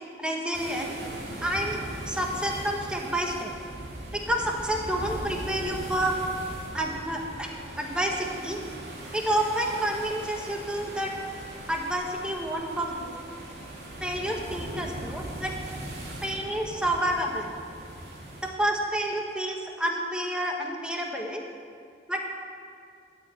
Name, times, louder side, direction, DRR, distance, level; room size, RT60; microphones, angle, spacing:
voice 1, 0.2-0.9 1.4-3.5 4.1-6.2 6.7-7.5 7.8-8.6 9.1-11.1 11.7-13.1 14.0-15.5 16.2-17.5 18.6-21.4 22.1-22.2, right 1 dB, 5° right, 0 dB, 1.2 m, -29 dB
sound 1, 0.5-18.5, right 1 dB, 70° right, 2.4 m, -40 dB
13.0 x 6.6 x 8.9 m, 2.3 s
head